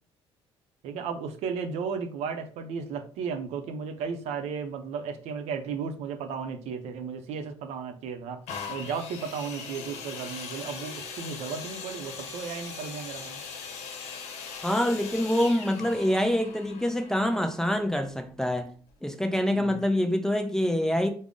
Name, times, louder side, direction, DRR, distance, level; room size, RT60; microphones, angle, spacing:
voice 1, 0.8-8.4 8.7-13.4 19.5-19.8, right 6 dB, 80° right, 0.5 m, -34 dB
sound 1, 8.5-18.2 18.9-19.0, left 5 dB, 80° left, 0.7 m, -40 dB
voice 2, 14.6-18.7 19.0-21.1, left 1 dB, 5° left, 0.3 m, -26 dB
3.6 x 2.0 x 3.7 m
cardioid pair, 130°, 11 cm